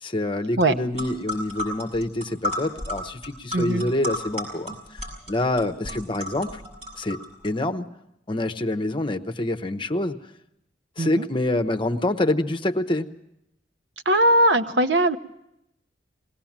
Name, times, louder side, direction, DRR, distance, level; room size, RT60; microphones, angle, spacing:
voice 1, 0.0-6.6 7.0-7.9 8.3-10.2 11.0-13.1, left 1 dB, 30° left, 7 dB, 1.0 m, -26 dB
sound 1, 0.6-0.7 0.9-7.5, equal, 40° right, 6.9 m, -33 dB
voice 2, 3.5-3.8 11.0-11.3 14.0-15.2, right 1 dB, 80° right, 8 dB, 1.0 m, -20 dB
21.0 x 18.0 x 7.4 m, 0.82 s
head